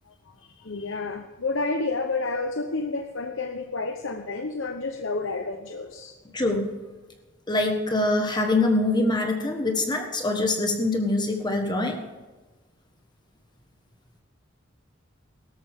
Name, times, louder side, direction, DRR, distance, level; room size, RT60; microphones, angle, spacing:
voice 1, 0.4-6.1, left 3 dB, 85° left, 5 dB, 1.0 m, -30 dB
voice 2, 6.3-6.7 7.5-12.0, left 2 dB, 25° left, 3 dB, 1.4 m, -24 dB
18.0 x 13.5 x 3.7 m, 1.2 s
head